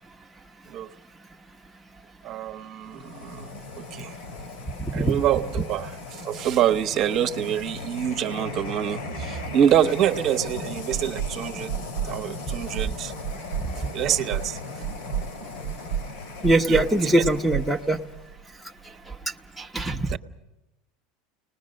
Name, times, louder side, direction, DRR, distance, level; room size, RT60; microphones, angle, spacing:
voice 1, 2.2-4.2 4.9-11.8 12.0-13.1 13.8-14.8 16.7-17.2 20.1-20.2, right 10 dB, 45° right, 1.1 m, -26 dB
sound 1, 2.9-18.3, left 3 dB, 75° left, 3.2 m, -38 dB
voice 2, 4.8-5.2 16.4-18.0 19.6-20.2, right 1 dB, ahead, 1.0 m, -22 dB
sound 2, 10.5-10.6 10.9-11.3 11.7-12.1 12.5-12.9 13.2-13.7 14.1-14.5 14.8-15.3 15.6-16.1 16.4-16.9 17.2-18.4, right 9 dB, 85° right, 0.7 m, -30 dB
30.0 x 20.0 x 6.5 m
supercardioid pair, 120°, 0 cm